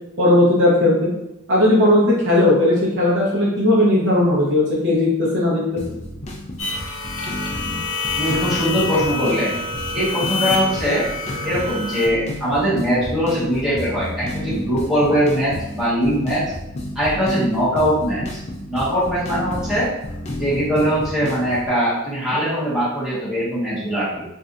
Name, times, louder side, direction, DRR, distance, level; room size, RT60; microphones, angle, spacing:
voice 1, 0.2-1.1 1.5-5.8, left 1 dB, 55° right, -6 dB, 0.9 m, -17 dB
sound 1, 5.8-21.7, left 1 dB, 30° left, 0.4 m, -32 dB
sound 2, 6.6-12.1, left 3 dB, 80° left, 0.7 m, -27 dB
voice 2, 8.2-9.6 9.9-11.1 11.4-16.4 16.9-18.4 18.7-19.9 20.4-24.2, equal, 5° right, -11 dB, 1.3 m, -21 dB
3.3 x 2.6 x 2.5 m, 0.89 s
head